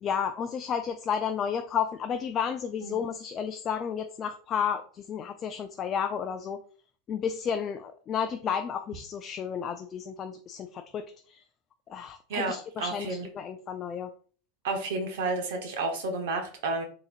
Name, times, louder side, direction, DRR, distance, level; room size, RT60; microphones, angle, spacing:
voice 1, 0.0-6.6 7.1-11.4 11.9-14.1, left 7 dB, 35° left, 6 dB, 0.3 m, -32 dB
voice 2, 12.3-13.3 14.6-16.8, right 3 dB, 70° right, 3 dB, 0.9 m, -31 dB
3.8 x 2.9 x 2.4 m, 0.44 s
hypercardioid pair, 95°, 0 cm